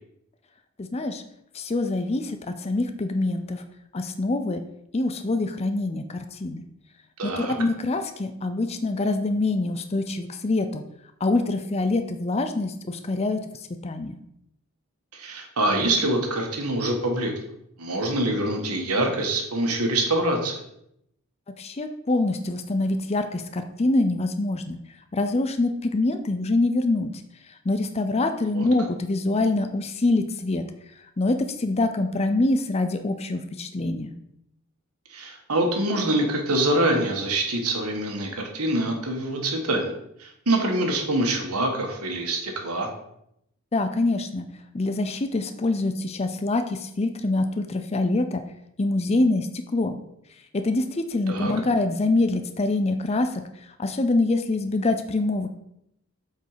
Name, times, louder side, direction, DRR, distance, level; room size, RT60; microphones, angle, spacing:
voice 1, 0.8-1.2 1.5-3.6 3.9-4.6 4.9-6.6 7.2-10.8 11.2-13.4 13.8-14.2 21.6-24.8 25.1-27.1 27.5-30.6 31.2-34.2 43.7-44.4 44.7-48.4 48.8-50.0 50.5-53.4 53.8-55.5, left 2 dB, 30° left, 8 dB, 0.5 m, -25 dB
voice 2, 7.2-7.5 15.1-17.3 17.8-20.6 28.5-28.6 35.1-39.9 40.2-42.9 51.3-51.5, right 1 dB, 85° right, 2 dB, 1.6 m, -25 dB
7.7 x 4.6 x 5.0 m, 0.78 s
head